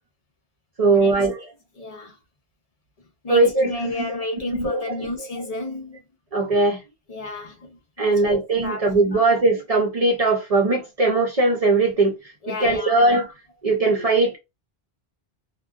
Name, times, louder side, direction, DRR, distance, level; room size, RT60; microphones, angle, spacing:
voice 1, 0.8-1.5 3.3-4.2 4.5-5.1 6.3-6.8 8.0-13.3 13.6-14.4, right 2 dB, 45° right, 0.6 m, -20 dB
voice 2, 1.8-2.2 3.2-6.0 7.1-8.8 9.1-9.2 12.4-13.0, left 2 dB, 45° left, 0.7 m, -32 dB
2.6 x 2.1 x 2.4 m
omnidirectional pair, 1.0 m